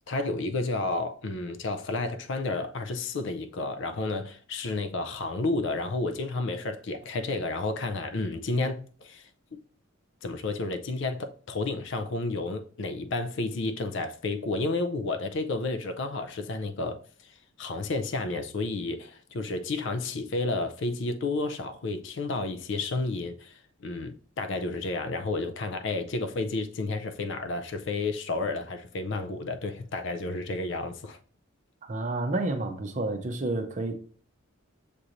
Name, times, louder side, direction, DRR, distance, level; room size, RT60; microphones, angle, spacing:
voice 1, 0.1-9.6 10.2-17.3 17.6-31.2, left 3 dB, 60° left, 0.5 m, -31 dB
voice 2, 31.8-33.9, right 2 dB, 35° right, 0.6 m, -30 dB
6.7 x 3.0 x 2.5 m
head